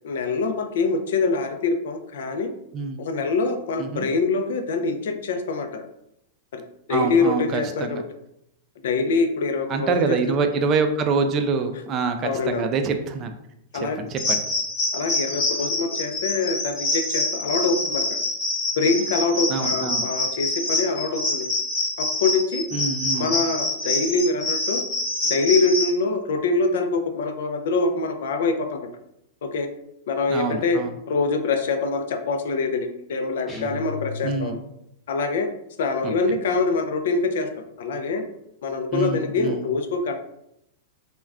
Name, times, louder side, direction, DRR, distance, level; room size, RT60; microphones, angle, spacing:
voice 1, 0.0-2.5 3.0-5.8 6.5-6.6 6.9-8.0 8.8-10.2 12.2-12.7 13.7-14.0 14.9-18.2 18.8-21.5 22.0-22.6 23.1-24.8 25.2-28.8 29.4-29.7 30.1-30.8 31.1-34.6 35.1-35.5 35.8-37.5 37.8-38.2 38.6-40.1, left 4 dB, 75° left, 5 dB, 0.4 m, -24 dB
voice 2, 6.9-8.0 9.7-13.3 14.0-14.4 19.5-20.0 22.7-23.3 30.3-30.9 34.2-34.6 36.0-36.1 38.9-39.6, right 5 dB, 35° right, 7 dB, 0.3 m, -25 dB
sound 1, 14.2-25.9, left 2 dB, 35° left, 1.1 m, -26 dB
sound 2, 33.5-34.8, left 4 dB, 10° left, 0.7 m, -35 dB
2.4 x 2.2 x 3.4 m, 0.80 s
hypercardioid pair, 130°, 0 cm